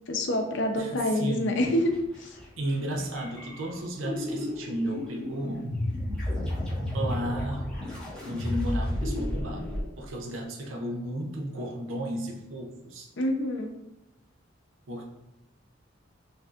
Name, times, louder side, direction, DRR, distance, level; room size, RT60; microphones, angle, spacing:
voice 1, 0.1-1.9 2.2-2.3 13.2-13.7, left 1 dB, 65° left, 3 dB, 0.6 m, -26 dB
voice 2, 0.8-1.7 2.6-5.7 6.9-7.9 8.2-13.1 14.9-15.1, right 1 dB, 85° right, 1 dB, 0.6 m, -34 dB
sound 1, 1.7-2.4 3.0-9.8, left 1 dB, 5° left, 1.3 m, -32 dB
5.9 x 2.7 x 2.4 m, 0.87 s
head